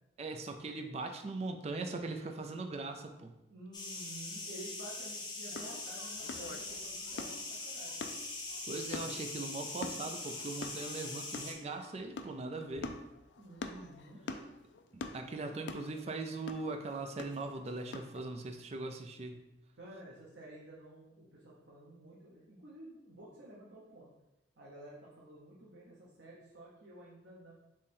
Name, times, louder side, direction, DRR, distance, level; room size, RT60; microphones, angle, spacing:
voice 1, 0.2-3.3 8.7-13.0 14.9-19.4, right 3 dB, 35° right, 5 dB, 0.4 m, -40 dB
voice 2, 3.5-8.0 13.4-14.2 19.8-24.1 24.6-27.5, right 1 dB, 85° right, -6 dB, 0.9 m, -51 dB
sound 1, 3.7-11.5, left 2 dB, 25° left, 0.7 m, -42 dB
sound 2, 5.5-18.2, left 3 dB, 85° left, 0.4 m, -46 dB
3.8 x 3.1 x 4.1 m, 0.94 s
head